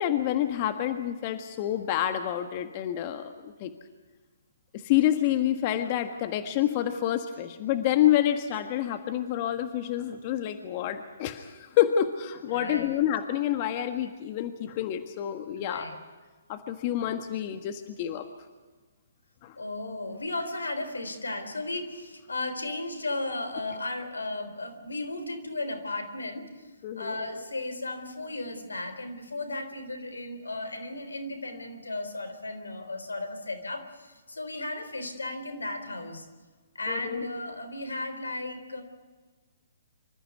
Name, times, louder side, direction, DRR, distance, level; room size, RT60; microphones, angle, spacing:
voice 1, 0.0-3.7 4.8-15.8 16.5-18.2 19.4-19.5 26.8-27.1 36.9-37.2, left 11 dB, 40° left, 8 dB, 1.6 m, -28 dB
voice 2, 12.5-12.9 15.6-16.0 19.6-26.7 27.0-36.3 36.7-38.8, left 2 dB, 85° left, 9 dB, 3.9 m, -35 dB
26.0 x 14.5 x 9.5 m, 1.3 s
figure-of-eight pair, 135°, 0 cm